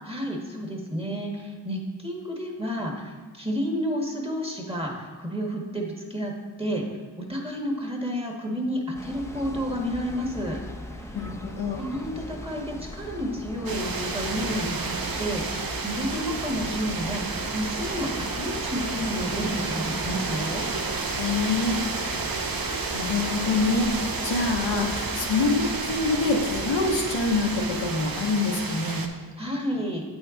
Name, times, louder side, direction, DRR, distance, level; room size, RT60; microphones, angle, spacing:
voice 1, 0.1-6.3 6.6-6.8 7.2-10.6 10.9-11.2 11.7-20.6 29.4-30.0, equal, 15° right, 0 dB, 1.5 m, -31 dB
sound 1, 8.9-28.3, left 1 dB, 5° left, 0.6 m, -39 dB
voice 2, 11.1-11.8 21.1-21.8 22.9-29.0, left 3 dB, 85° left, 2 dB, 0.9 m, -26 dB
sound 2, 13.7-29.1, right 4 dB, 55° right, 0.8 m, -31 dB
8.5 x 4.4 x 3.8 m, 1.4 s
cardioid pair, 45°, 43 cm